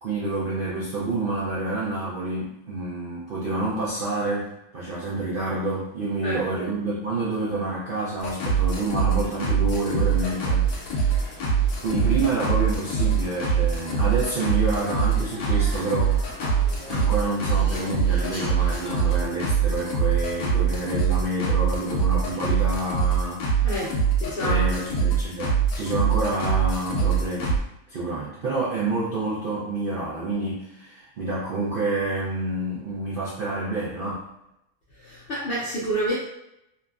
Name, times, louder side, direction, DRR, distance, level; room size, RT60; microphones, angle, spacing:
voice 1, 0.0-11.3 11.8-16.2 16.9-23.8 24.4-27.6 27.9-34.3, right 2 dB, 70° right, -7 dB, 0.5 m, -28 dB
sound 1, 8.2-27.6, right 6 dB, 80° left, 1.1 m, -23 dB
sound 2, 9.9-19.2, left 1 dB, 20° left, 1.5 m, -42 dB
voice 2, 23.6-24.9 35.0-36.1, equal, 65° left, -7 dB, 0.6 m, -29 dB
2.9 x 2.4 x 2.3 m, 0.83 s
omnidirectional pair, 1.6 m